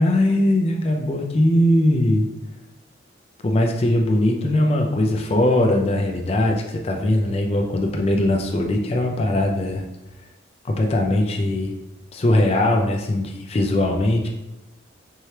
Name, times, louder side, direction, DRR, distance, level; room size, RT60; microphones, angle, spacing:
voice 1, 0.0-2.3 3.4-9.8 10.6-11.7 12.1-14.3, left 1 dB, 30° left, 1 dB, 0.4 m, -20 dB
4.5 x 3.2 x 2.8 m, 0.98 s
head